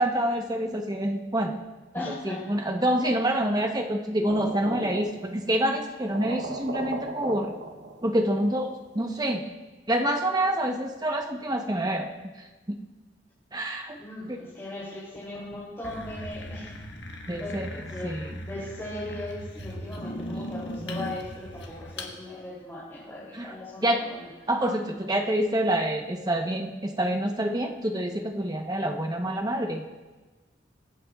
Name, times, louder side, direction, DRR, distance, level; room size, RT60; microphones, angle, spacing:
voice 1, 0.0-1.6 2.2-7.5 8.0-9.4 9.9-12.1 13.5-14.0 14.3-14.4 17.3-18.4 23.3-23.5 23.8-24.0 24.5-29.8, right 1 dB, 20° right, 3 dB, 0.9 m, -27 dB
voice 2, 1.9-2.4 14.0-16.7 17.4-17.5 17.8-18.2 18.4-24.3, left 1 dB, 15° left, -9 dB, 3.0 m, -38 dB
sound 1, 4.2-5.5 5.8-5.9 6.1-8.4, right 2 dB, 70° right, 0.9 m, -36 dB
sound 2, 15.8-22.1, left 1 dB, 75° left, 1.4 m, -38 dB
23.0 x 8.3 x 2.4 m, 1.2 s
head